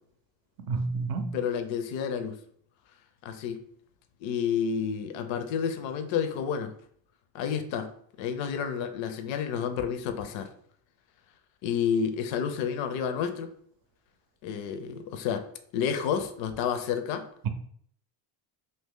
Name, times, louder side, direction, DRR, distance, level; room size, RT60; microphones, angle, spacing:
voice 1, 0.6-1.3, right 3 dB, 45° right, 0.5 m, -30 dB
voice 2, 1.3-2.4 3.2-3.6 4.2-6.7 7.3-7.9 8.2-10.5 11.6-13.5 14.4-15.5 15.7-17.3, left 7 dB, 65° left, 0.6 m, -30 dB
2.7 x 2.7 x 3.6 m
cardioid pair, 130°, 48 cm